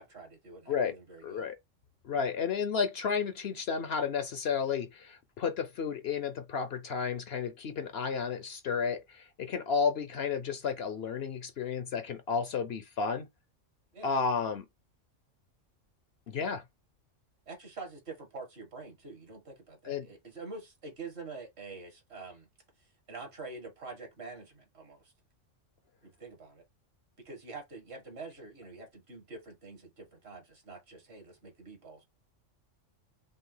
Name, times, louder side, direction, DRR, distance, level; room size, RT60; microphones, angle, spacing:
voice 1, 0.0-1.5 13.9-14.1 17.5-22.5 23.1-25.1 26.0-26.6 27.2-32.1, right 3 dB, 55° right, 1.9 m, -46 dB
voice 2, 1.2-1.6 2.0-13.3 14.0-14.7 16.3-16.6 19.8-20.1, left 6 dB, 60° left, 0.8 m, -32 dB
5.4 x 2.4 x 3.8 m
omnidirectional pair, 1.3 m